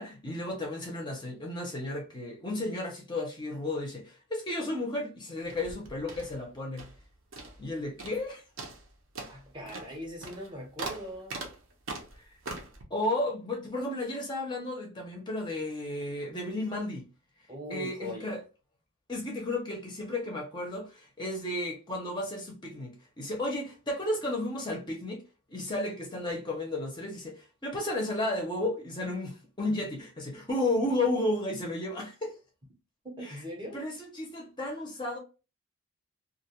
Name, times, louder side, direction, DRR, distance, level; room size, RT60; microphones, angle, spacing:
voice 1, 0.0-6.9 7.6-8.4 12.2-12.3 12.9-17.1 17.7-18.4 19.1-25.2 25.5-32.4 33.2-33.4 33.7-35.2, left 1 dB, 20° left, 0.5 m, -33 dB
sound 1, 5.4-7.0 7.3-7.7 8.0-8.3 8.6-12.8, right 3 dB, 60° right, 0.6 m, -41 dB
voice 2, 9.3-11.4 17.5-18.4 33.2-33.8, equal, 20° right, 0.7 m, -40 dB
2.4 x 2.2 x 2.8 m
head